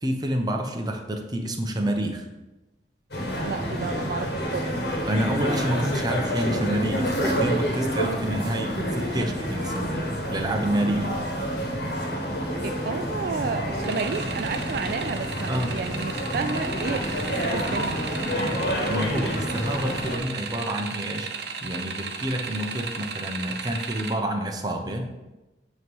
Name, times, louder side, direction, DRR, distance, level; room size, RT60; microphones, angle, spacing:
voice 1, 0.0-2.3 5.1-11.1 15.5-15.8 18.2-25.3, right 1 dB, 25° right, 3 dB, 0.8 m, -28 dB
sound 1, 3.1-20.2, equal, 70° left, 1.4 m, -28 dB
voice 2, 3.4-4.7 12.6-17.1 17.5-18.6, right 5 dB, 55° right, 7 dB, 0.3 m, -31 dB
sound 2, 13.8-24.1, right 5 dB, 70° right, 0.8 m, -35 dB
9.2 x 3.1 x 5.4 m, 1.0 s
head